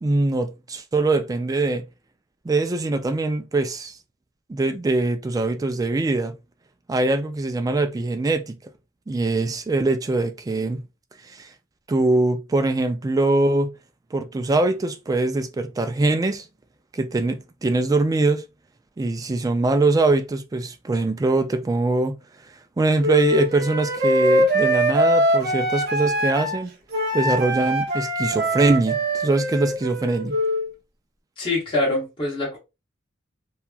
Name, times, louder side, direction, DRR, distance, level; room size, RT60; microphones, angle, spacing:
voice 1, 0.0-1.8 2.4-4.0 4.5-6.3 6.9-8.6 9.1-10.8 11.2-11.5 11.9-13.7 14.1-16.5 16.9-18.4 19.0-22.2 22.8-26.7 27.1-30.4, right 2 dB, 20° right, 0.3 m, -22 dB
Wind instrument woodwind instrument, 23.0-26.6 26.9-30.7, equal, 50° right, 0.7 m, -22 dB
voice 2, 31.4-32.6, left 2 dB, 25° left, 0.8 m, -24 dB
2.8 x 2.3 x 2.4 m
head